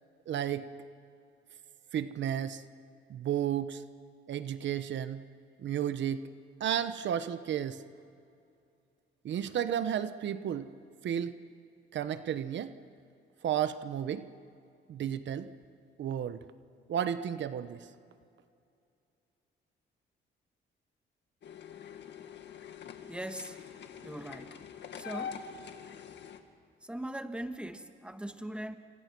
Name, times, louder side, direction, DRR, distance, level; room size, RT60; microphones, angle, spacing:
voice 1, 0.3-0.7 1.9-2.6 3.1-3.8 4.3-5.2 5.6-6.3 6.6-7.8 9.2-10.7 11.0-11.4 11.9-12.8 13.4-14.3 14.9-15.5 16.0-16.4 16.9-17.9, right 9 dB, 65° right, 11 dB, 1.1 m, -32 dB
sound 1, 21.4-26.4, left 7 dB, 65° left, 2.0 m, -45 dB
voice 2, 23.1-23.6 24.0-24.6 24.9-25.4 26.8-28.7, right 1 dB, 5° right, 7 dB, 1.7 m, -40 dB
30.0 x 26.5 x 6.2 m, 2.5 s
cardioid pair, 90°, 20 cm